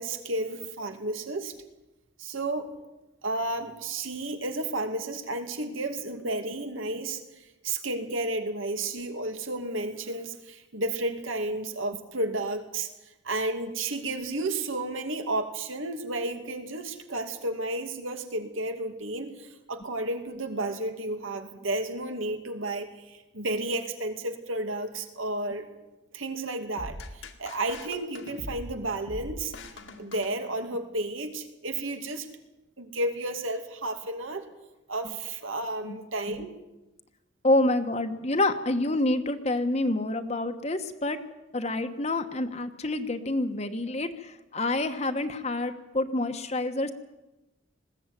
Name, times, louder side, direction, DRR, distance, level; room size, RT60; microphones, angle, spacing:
voice 1, 0.0-1.5 2.2-2.8 3.2-12.9 13.2-25.7 26.1-29.5 30.0-32.3 32.8-34.4 34.9-36.6, right 2 dB, 85° right, 6 dB, 2.5 m, -32 dB
sound 1, 26.8-30.9, left 1 dB, 75° left, 2.1 m, -42 dB
voice 2, 37.4-41.2 41.5-46.9, left 2 dB, 35° left, 7 dB, 1.2 m, -27 dB
20.5 x 15.5 x 9.8 m, 1.0 s
head